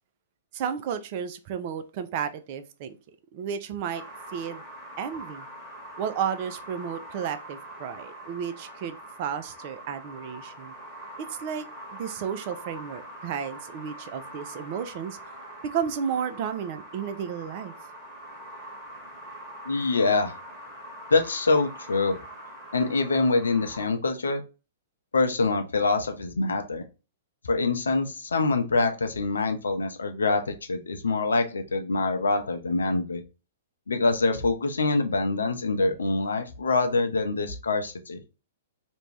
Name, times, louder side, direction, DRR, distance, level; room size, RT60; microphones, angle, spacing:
voice 1, 0.5-3.0 3.3-4.0 4.3-4.6 5.0-5.5 6.0-10.7 11.3-11.7 11.9-15.2 15.7-17.7, right 8 dB, 45° right, 10 dB, 0.4 m, -32 dB
sound 1, 3.9-23.9, right 1 dB, 20° right, 1.2 m, -43 dB
voice 2, 19.6-20.3 21.1-22.2 22.7-24.4 25.1-26.8 27.4-33.2 33.9-38.2, left 3 dB, 75° left, 6 dB, 0.5 m, -25 dB
2.5 x 2.2 x 3.2 m, 0.30 s
figure-of-eight pair, 110°, 0 cm